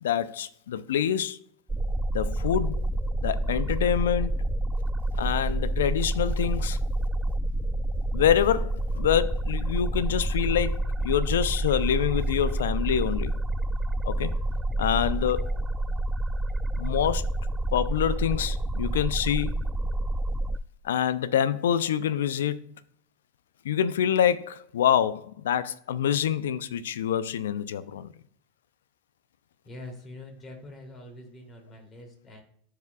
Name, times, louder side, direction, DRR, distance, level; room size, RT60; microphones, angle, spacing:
voice 1, 0.0-1.4 2.1-2.8 3.2-4.4 5.1-6.8 8.1-13.4 14.1-14.4 14.8-15.6 16.7-17.3 17.7-19.6 20.8-22.7 23.6-28.1, left 9 dB, 75° left, 0.5 m, -26 dB
sound 1, 1.7-20.6, right 1 dB, 15° right, 0.3 m, -28 dB
voice 2, 29.6-32.4, left 1 dB, 30° left, 2.7 m, -44 dB
14.0 x 4.9 x 2.3 m
hypercardioid pair, 85°, 0 cm